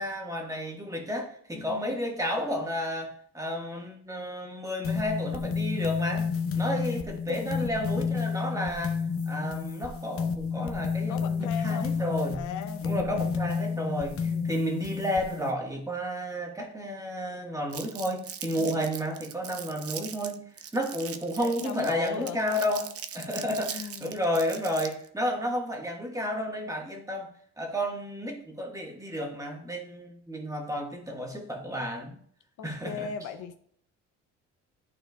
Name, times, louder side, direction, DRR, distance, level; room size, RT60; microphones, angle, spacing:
voice 1, 0.0-9.0 9.3-12.4 12.8-20.4 20.7-32.2 32.6-33.1, equal, 10° right, 0 dB, 1.5 m, -32 dB
voice 2, 1.5-2.0 6.5-6.7 7.3-7.6 11.1-11.9 12.3-13.5 14.2-14.6 18.6-18.9 21.4-22.5 23.7-24.2 32.6-33.5, left 7 dB, 80° left, 8 dB, 0.7 m, -39 dB
sound 1, 4.8-15.5, left 5 dB, 50° left, 0.8 m, -30 dB
Crumpling crinkling, 17.7-25.1, right 8 dB, 50° right, 0.6 m, -40 dB
11.5 x 4.4 x 2.3 m, 0.63 s
cardioid pair, 90°, 30 cm